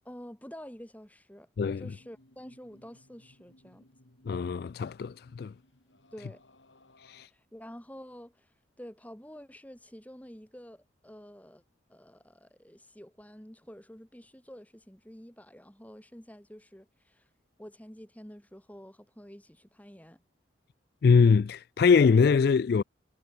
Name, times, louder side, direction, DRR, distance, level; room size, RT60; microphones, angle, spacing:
voice 1, 0.1-1.5 1.8-3.9 6.1-6.4 7.1-11.6 11.9-17.3 17.6-20.2, equal, 10° left, 1.9 m, -49 dB
sound 1, 1.7-7.3, left 1 dB, 70° left, 3.4 m, -62 dB
voice 2, 4.3-5.5 7.1-7.3 21.0-22.8, left 5 dB, 50° left, 0.3 m, -23 dB
head